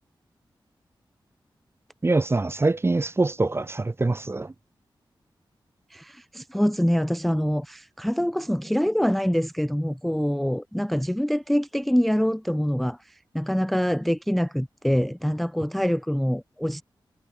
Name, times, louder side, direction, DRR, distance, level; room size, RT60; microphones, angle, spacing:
voice 1, 2.0-4.5, right 2 dB, 30° right, 1.1 m, -24 dB
voice 2, 5.9-16.8, equal, ahead, 0.4 m, -25 dB
wide cardioid pair, 80°, 9 cm